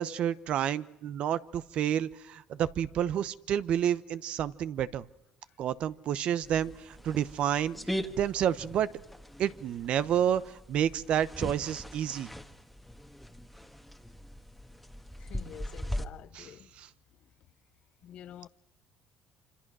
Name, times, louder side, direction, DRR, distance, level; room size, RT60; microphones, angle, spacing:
voice 1, 0.0-5.0 5.6-8.9 9.4-12.3 16.3-16.5 16.8-16.9, right 10 dB, 60° right, 1.0 m, -30 dB
sound 1, 6.4-16.0, equal, ahead, 1.5 m, -40 dB
voice 2, 15.2-16.7 18.0-18.5, left 10 dB, 60° left, 0.8 m, -48 dB
26.5 x 26.0 x 6.3 m
cardioid pair, 100°, 2 cm